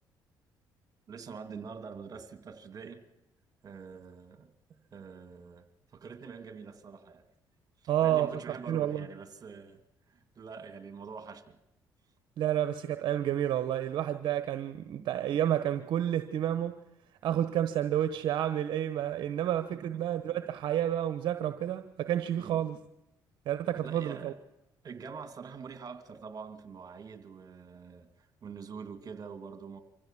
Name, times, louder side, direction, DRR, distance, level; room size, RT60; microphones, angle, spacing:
voice 1, 1.1-3.0 3.6-5.7 5.9-7.3 8.0-9.8 10.1-11.6 19.8-19.9 22.4-22.6 23.8-24.3 24.8-29.8, right 5 dB, 45° right, 9 dB, 2.6 m, -45 dB
voice 2, 7.9-9.0 12.4-16.8 17.2-22.8 23.5-24.3, right 11 dB, 70° right, 10 dB, 1.1 m, -30 dB
25.0 x 15.5 x 7.5 m, 0.88 s
supercardioid pair, 75°, 8 cm